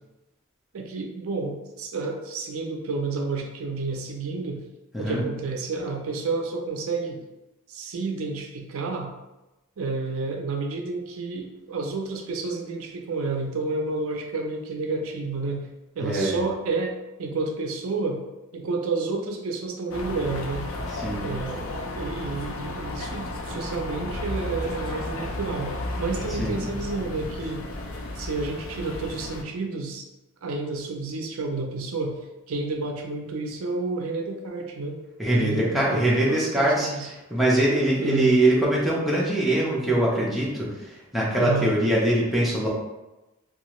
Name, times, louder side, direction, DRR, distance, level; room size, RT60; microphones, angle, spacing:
voice 1, 0.7-4.6 5.0-7.2 7.7-9.1 9.8-15.6 16.0-18.2 18.5-20.7 21.2-27.6 28.2-30.0 30.4-32.2 32.5-35.0 35.3-37.1 38.0-38.3 41.3-41.7, right 3 dB, 75° right, 2 dB, 0.4 m, -30 dB
voice 2, 16.0-16.4 20.9-21.3 26.4-26.6 35.2-42.7, right 1 dB, ahead, -6 dB, 0.6 m, -23 dB
sound 1, 19.9-29.4, left 1 dB, 65° left, 0.4 m, -33 dB
2.7 x 2.4 x 3.0 m, 1.0 s
head